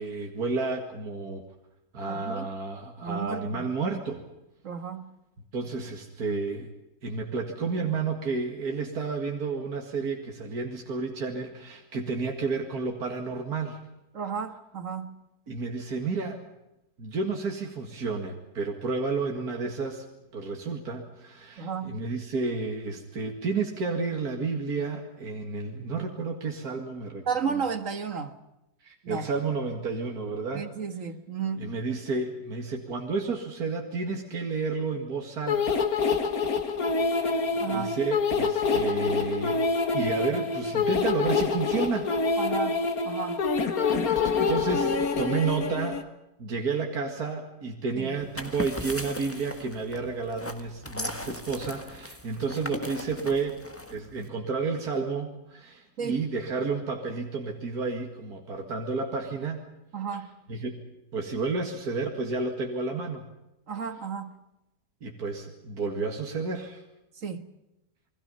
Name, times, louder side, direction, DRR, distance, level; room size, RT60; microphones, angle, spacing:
voice 1, 0.0-1.4 1.9-4.2 5.5-6.7 7.0-13.8 15.5-16.4 17.0-20.0 20.3-27.6 28.8-30.7 31.6-35.8 37.1-39.7 39.9-42.1 44.5-46.0 46.4-53.6 53.9-59.6 60.1-60.2 60.5-63.3 65.0-66.8, right 4 dB, 75° right, 2.6 m, -31 dB
voice 2, 2.1-2.5 3.0-3.7 4.6-5.1 14.1-15.2 21.6-22.0 27.3-28.4 29.0-29.2 30.5-31.8 37.6-38.0 42.4-43.4 48.0-48.2 56.0-56.2 59.9-60.3 63.7-64.4 67.2-67.5, right 6 dB, 55° right, 1.9 m, -33 dB
sound 1, 35.5-46.0, left 4 dB, 65° left, 2.0 m, -26 dB
sound 2, 48.2-54.3, left 1 dB, 10° left, 1.5 m, -38 dB
30.0 x 21.5 x 5.5 m
omnidirectional pair, 1.6 m